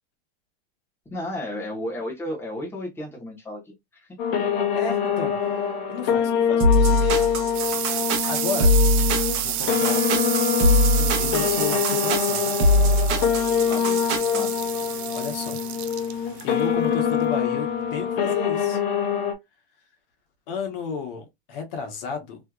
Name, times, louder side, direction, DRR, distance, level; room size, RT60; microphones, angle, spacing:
voice 1, 1.1-4.1 13.7-14.5, left 1 dB, 5° left, 1.2 m, -33 dB
sound 1, 4.2-19.3, left 8 dB, 40° left, 0.7 m, -25 dB
voice 2, 4.7-5.3 5.9-7.2 8.3-8.7 9.4-10.0 11.0-12.5 15.1-15.6 16.4-18.8 20.5-22.4, left 5 dB, 55° left, 1.1 m, -33 dB
sound 2, 6.6-14.5, left 1 dB, 40° right, 1.0 m, -22 dB
sound 3, 6.8-18.1, right 13 dB, 75° right, 0.6 m, -30 dB
3.3 x 2.8 x 2.4 m
supercardioid pair, 145°, 33 cm